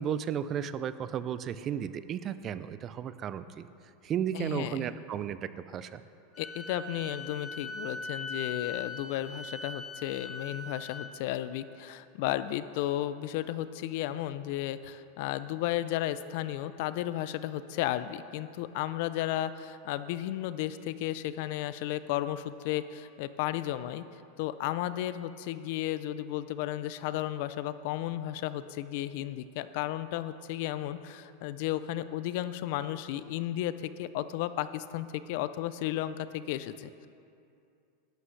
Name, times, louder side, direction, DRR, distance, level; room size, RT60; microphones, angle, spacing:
voice 1, 0.0-3.7 4.0-6.0, right 9 dB, 30° right, 14 dB, 0.3 m, -34 dB
voice 2, 4.3-4.9 6.4-24.0 24.4-37.1, left 13 dB, 60° left, 14 dB, 0.4 m, -34 dB
Wind instrument woodwind instrument, 6.3-11.1, left 4 dB, 10° left, 0.9 m, -40 dB
11.5 x 11.0 x 3.3 m, 2.5 s
supercardioid pair, 145°, 0 cm